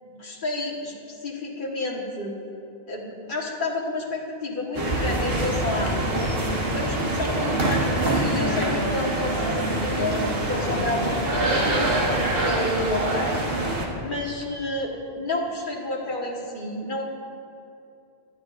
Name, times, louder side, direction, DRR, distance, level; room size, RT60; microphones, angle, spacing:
voice 1, 0.0-2.3 2.9-6.3 6.7-13.5 14.0-17.0, left 2 dB, 50° left, -3 dB, 1.7 m, -30 dB
sound 1, 4.7-13.9, right 1 dB, 70° right, 1.5 m, -25 dB
24.0 x 9.7 x 2.6 m, 2.6 s
omnidirectional pair, 1.1 m